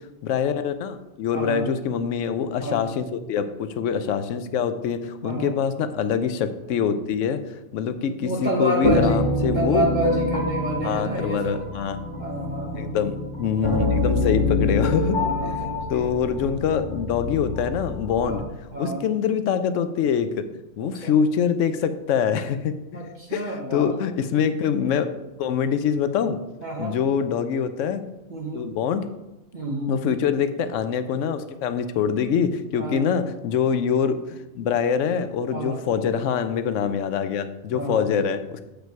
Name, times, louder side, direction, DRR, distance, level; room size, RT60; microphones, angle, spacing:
voice 1, 0.2-7.4 7.7-9.9 10.8-12.0 12.7-15.5 15.9-18.4 18.8-20.5 20.8-22.7 23.3-23.4 23.7-25.1 25.4-26.4 26.8-28.1 28.5-29.1 29.9-38.6, left 7 dB, 80° left, 11 dB, 1.0 m, -24 dB
voice 2, 1.3-1.7 2.6-2.8 5.2-5.6 8.2-9.2 9.5-11.6 12.2-13.0 13.6-14.0 15.1-16.1 18.2-19.0 20.8-21.2 22.9-23.9 26.6-27.0 28.3-28.7 29.5-29.9 32.8-33.1 35.5-35.8 37.7-38.1, right 1 dB, 40° right, -2 dB, 1.0 m, -29 dB
sound 1, 8.8-18.4, left 2 dB, 25° left, 1.1 m, -26 dB
7.6 x 5.2 x 4.6 m, 0.98 s
omnidirectional pair, 1.3 m